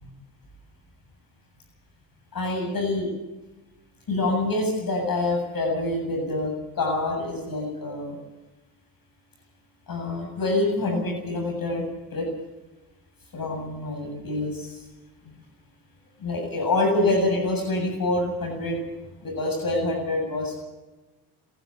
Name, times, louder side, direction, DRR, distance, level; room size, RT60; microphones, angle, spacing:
voice 1, 2.3-3.1 4.1-8.2 9.9-11.8 12.1-12.3 13.3-14.8 16.2-18.8 19.2-20.6, left 2 dB, 45° left, 2 dB, 7.9 m, -26 dB
27.0 x 12.0 x 8.7 m, 1.1 s
supercardioid pair, 75°, 50 cm